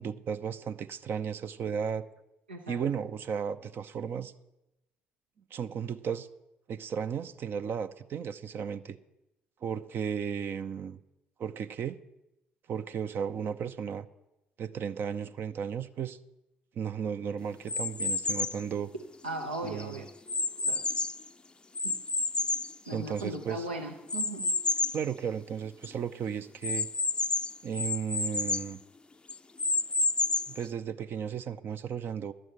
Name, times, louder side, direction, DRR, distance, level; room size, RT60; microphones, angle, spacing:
voice 1, 0.0-2.1 2.7-4.3 5.5-6.3 6.7-9.0 9.6-11.0 11.4-12.0 12.7-14.1 14.6-16.2 16.8-18.9 19.6-20.0 22.9-23.7 24.9-26.9 27.6-28.8 30.5-32.3, right 7 dB, 50° right, 10 dB, 0.5 m, -34 dB
voice 2, 2.5-2.8 19.2-20.1 20.6-20.8 21.8-22.0 22.9-24.5, right 2 dB, 90° right, 1 dB, 0.7 m, -37 dB
sound 1, 17.7-18.6 19.3-21.3 21.8-23.4 24.1-25.1 25.5-25.6 25.8-25.9 26.6-28.7 29.3-30.6, left 3 dB, 20° left, 0.4 m, -30 dB
11.0 x 6.2 x 8.6 m, 0.92 s
figure-of-eight pair, 50°, 5 cm